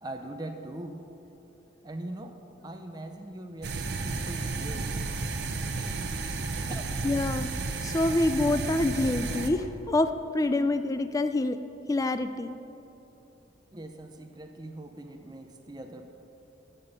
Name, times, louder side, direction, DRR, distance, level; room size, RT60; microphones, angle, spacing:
voice 1, 0.0-1.0 1.8-2.4 2.6-5.0 6.7-6.9 13.7-16.0, right 1 dB, 20° right, 4 dB, 0.6 m, -41 dB
sound 1, 3.6-9.5, right 3 dB, 60° right, 0.7 m, -32 dB
voice 2, 7.0-7.5 7.8-11.6 11.9-12.5, left 2 dB, 20° left, 10 dB, 0.3 m, -26 dB
13.0 x 6.9 x 5.5 m, 2.9 s
head